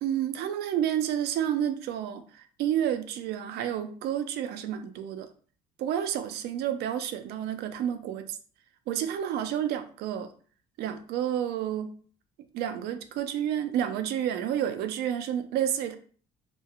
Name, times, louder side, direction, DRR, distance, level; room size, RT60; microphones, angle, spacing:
voice 1, 0.0-5.3 5.8-8.4 8.9-10.3 10.8-12.0 12.5-16.0, right 10 dB, 75° right, 0.4 m, -30 dB
2.8 x 2.2 x 2.3 m
cardioid pair, 110°, 17 cm